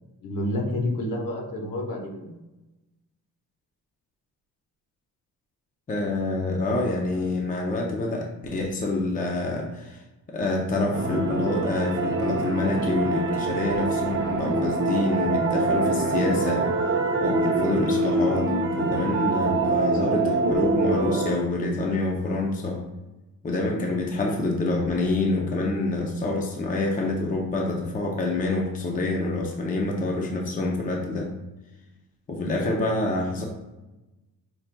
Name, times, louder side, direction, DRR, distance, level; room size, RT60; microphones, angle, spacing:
voice 1, 0.2-2.3, left 1 dB, 70° left, 1 dB, 1.0 m, -29 dB
voice 2, 5.9-10.0 10.3-16.7 17.2-18.5 18.8-22.8 23.4-31.3 32.3-33.4, left 2 dB, 25° left, 0 dB, 0.5 m, -27 dB
sound 1, 10.9-21.3, right 2 dB, 35° right, 0.6 m, -25 dB
5.7 x 3.9 x 2.2 m, 1.0 s
wide cardioid pair, 175°, 34 cm